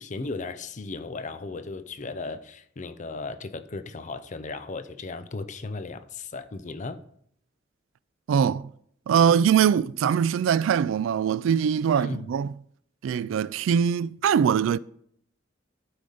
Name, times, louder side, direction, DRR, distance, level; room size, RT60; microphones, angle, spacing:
voice 1, 0.0-7.0 11.9-12.2, left 3 dB, 40° left, 0.5 m, -36 dB
voice 2, 8.3-8.7 9.1-12.5 13.0-14.8, right 7 dB, 85° right, 0.3 m, -22 dB
12.0 x 5.0 x 3.9 m
head